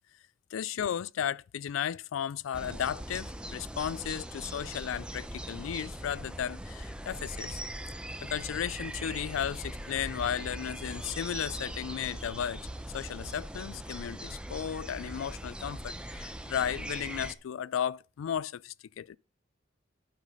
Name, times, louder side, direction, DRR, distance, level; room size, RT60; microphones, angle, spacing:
voice 1, 0.5-7.6 8.2-12.6 12.9-19.2, left 9 dB, 85° left, 0.3 m, -34 dB
sound 1, 2.5-17.3, right 1 dB, 5° right, 0.7 m, -40 dB
9.1 x 5.7 x 5.3 m
head